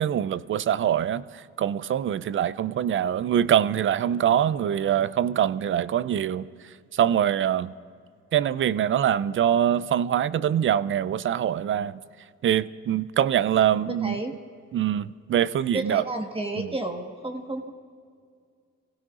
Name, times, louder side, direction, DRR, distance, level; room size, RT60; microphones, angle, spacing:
voice 1, 0.0-6.5 6.9-7.7 8.3-12.0 12.4-14.2 14.7-16.0 16.5-16.7, right 10 dB, 45° right, 0.4 m, -24 dB
voice 2, 14.0-14.3 15.7-17.7, right 2 dB, 20° right, 1.4 m, -31 dB
24.5 x 16.5 x 2.5 m
cardioid pair, 90°, 30 cm